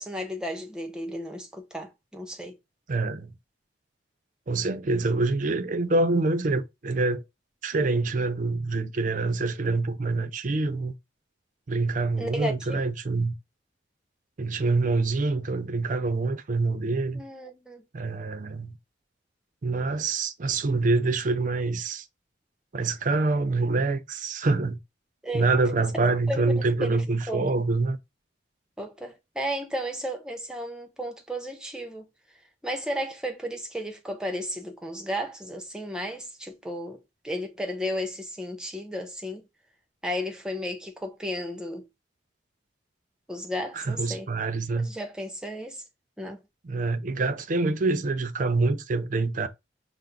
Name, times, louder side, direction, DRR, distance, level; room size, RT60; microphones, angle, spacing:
voice 1, 0.0-2.6 12.2-12.9 17.1-17.8 25.2-25.5 26.3-27.0 27.3-27.5 28.8-32.1 32.6-39.5 40.0-41.8 43.3-44.3 44.7-45.8 46.2-46.4, equal, 5° right, 0.6 m, -34 dB
voice 2, 2.9-3.3 4.5-7.2 7.6-10.9 11.7-13.3 14.4-17.2 17.9-18.7 19.6-22.1 22.7-24.8 25.3-28.0 43.8-44.9 46.6-49.5, right 3 dB, 45° right, 0.5 m, -26 dB
5.6 x 2.0 x 3.7 m
head